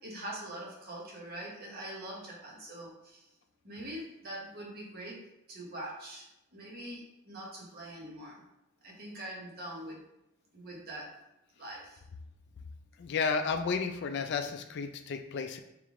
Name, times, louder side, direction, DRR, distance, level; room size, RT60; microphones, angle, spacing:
voice 1, 0.0-3.3 3.6-5.2 5.5-6.2 6.5-8.4 8.8-10.0 10.5-11.1 11.6-12.0, right 1 dB, 45° right, -2 dB, 1.1 m, -43 dB
voice 2, 13.0-15.6, left 5 dB, 50° left, 6 dB, 0.3 m, -32 dB
3.4 x 3.2 x 3.6 m, 0.89 s
head